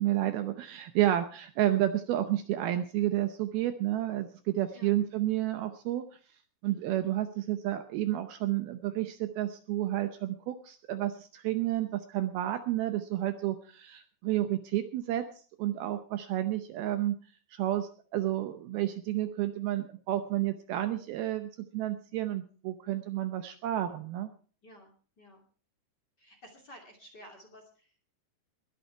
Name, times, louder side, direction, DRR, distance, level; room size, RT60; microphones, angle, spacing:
voice 1, 0.0-6.1 6.6-15.3 15.6-17.2 17.5-24.3, right 13 dB, 75° right, 9 dB, 2.5 m, -31 dB
voice 2, 4.7-5.1 6.7-7.0 24.6-25.4 26.2-27.9, equal, 30° left, 2 dB, 2.6 m, -53 dB
21.0 x 9.4 x 4.5 m, 0.40 s
omnidirectional pair, 5.0 m